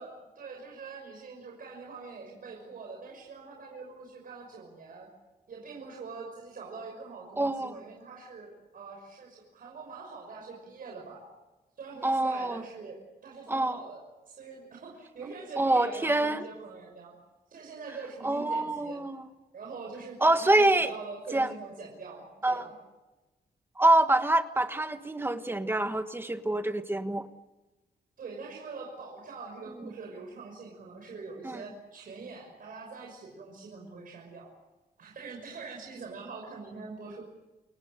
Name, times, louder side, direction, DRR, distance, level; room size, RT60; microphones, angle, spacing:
voice 1, 0.0-5.1 5.5-11.2 11.8-17.1 17.5-19.0 19.5-22.7 28.2-34.5 35.0-37.2, right 4 dB, 60° right, -1 dB, 6.2 m, -44 dB
voice 2, 7.4-7.7 12.0-12.6 13.5-13.8 15.6-16.4 18.2-19.2 20.2-20.9 21.3-21.5 22.4-22.6 23.8-27.3 31.4-31.6, right 2 dB, 15° right, 9 dB, 1.3 m, -25 dB
29.0 x 23.5 x 6.8 m, 1.1 s
wide cardioid pair, 160°, 17 cm